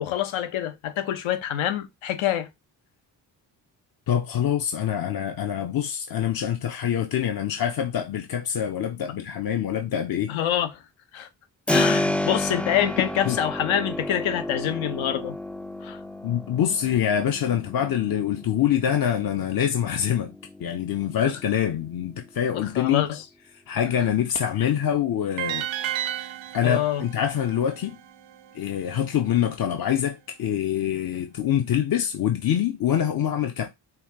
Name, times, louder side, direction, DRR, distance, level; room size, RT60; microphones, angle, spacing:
voice 1, 0.0-2.5 10.3-10.8 11.1-11.3 11.7-15.4 15.8-16.0 22.5-23.2 24.6-24.7 26.6-27.0, left 10 dB, 70° left, 1.0 m, -26 dB
voice 2, 4.1-10.4 13.2-13.4 16.2-20.3 20.6-23.0 23.7-25.7 26.0-28.0 28.5-33.7, left 9 dB, 45° left, 0.8 m, -25 dB
Keyboard (musical), 11.7-22.4, left 1 dB, 5° left, 0.3 m, -31 dB
sound 1, 25.4-28.5, right 12 dB, 65° right, 0.6 m, -33 dB
5.6 x 2.3 x 2.8 m
hypercardioid pair, 40°, 49 cm